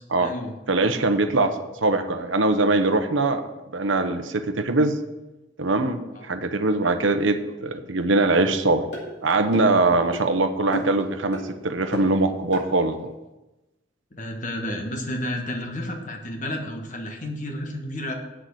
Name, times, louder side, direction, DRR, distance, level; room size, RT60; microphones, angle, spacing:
voice 1, 0.2-0.5 6.1-6.3 9.7-9.8 14.1-18.1, left 1 dB, 40° left, 3 dB, 1.5 m, -31 dB
voice 2, 0.7-3.5 3.7-5.0 5.6-8.9 9.2-13.0, right 2 dB, 75° right, 7 dB, 0.9 m, -22 dB
sound 1, 8.3-8.4 8.9-9.1 9.5-9.8 10.1-10.3 10.7-11.0 11.3-11.5 11.9-12.2 12.5-12.7, equal, 55° left, 3.2 m, -32 dB
7.9 x 6.4 x 8.0 m, 1.0 s
head